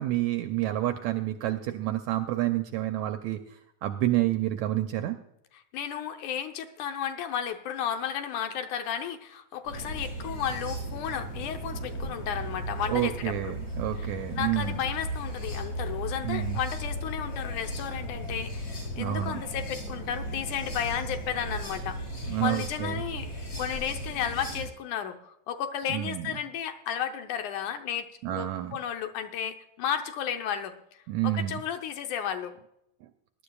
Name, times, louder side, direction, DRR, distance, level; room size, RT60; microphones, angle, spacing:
voice 1, 0.0-5.2 12.9-14.8 16.2-16.6 19.0-19.4 22.3-23.0 25.9-26.3 28.2-28.8 31.1-31.6, right 14 dB, 80° right, 7 dB, 1.7 m, -29 dB
voice 2, 5.7-13.5 14.0-14.1 14.4-22.0 22.4-23.3 23.6-32.5, left 9 dB, 70° left, 7 dB, 2.1 m, -33 dB
sound 1, 9.6-24.7, right 1 dB, 45° left, 5.8 m, -36 dB
20.5 x 11.5 x 2.3 m, 0.79 s
omnidirectional pair, 3.9 m